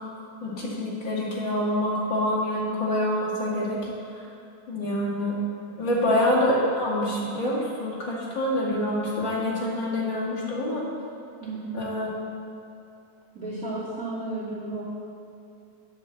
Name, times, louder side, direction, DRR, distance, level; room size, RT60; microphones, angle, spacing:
voice 1, 0.4-3.8 4.1-4.3 4.7-5.4 5.8-10.9 11.7-12.1, left 1 dB, 40° left, -7 dB, 1.9 m, -26 dB
voice 2, 5.7-6.1 11.4-11.9 13.3-14.8, right 2 dB, 25° right, -9 dB, 2.6 m, -34 dB
8.8 x 5.5 x 7.3 m, 2.7 s
omnidirectional pair, 4.3 m